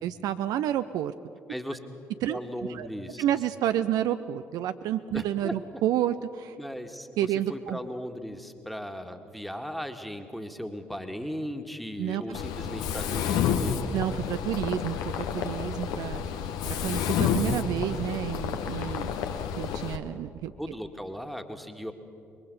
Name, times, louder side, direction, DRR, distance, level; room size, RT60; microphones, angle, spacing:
voice 1, 0.0-1.1 2.2-2.4 2.7-2.9 3.2-6.6 7.2-7.8 12.0-12.2 13.9-15.0 15.3-16.2 16.8-19.1 19.6-20.5, right 11 dB, 60° right, 11 dB, 0.5 m, -29 dB
voice 2, 2.3-3.2 5.1-5.8 6.6-13.9 20.6-21.9, equal, ahead, 6 dB, 1.9 m, -37 dB
Mechanisms, 12.3-20.0, left 7 dB, 65° left, 1.0 m, -30 dB
26.5 x 22.0 x 5.4 m, 2.6 s
figure-of-eight pair, 45°, 7 cm